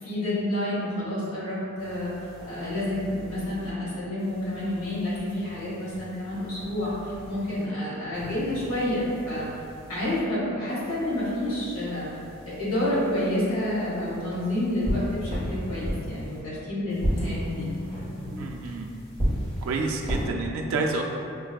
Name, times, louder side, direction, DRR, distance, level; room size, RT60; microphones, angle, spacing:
voice 1, 0.0-9.5 9.9-12.0 12.5-17.7, left 1 dB, 75° left, -9 dB, 1.4 m, -29 dB
sound 1, 1.8-3.7 4.2-7.6 8.1-10.2 10.7-16.4 16.9-20.2, equal, 20° left, 1.2 m, -35 dB
voice 2, 18.4-18.9 19.6-21.0, right 3 dB, 75° right, 1 dB, 0.3 m, -29 dB
5.2 x 2.6 x 2.2 m, 2.7 s
head